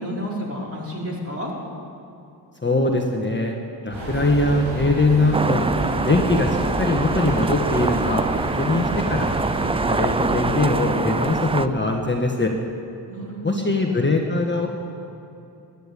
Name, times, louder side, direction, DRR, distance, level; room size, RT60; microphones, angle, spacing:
voice 1, 0.0-1.5 13.1-14.0, equal, 30° right, -4 dB, 4.6 m, -31 dB
voice 2, 2.6-3.6 3.8-5.7 6.0-9.3 9.9-12.5 13.4-14.7, left 2 dB, 25° left, 1 dB, 1.5 m, -22 dB
sound 1, 3.9-11.6, right 1 dB, 85° right, 4.7 m, -30 dB
sound 2, 5.3-11.7, right 3 dB, 15° right, 0.3 m, -24 dB
13.0 x 11.0 x 8.6 m, 2.7 s
cardioid pair, 55°, 46 cm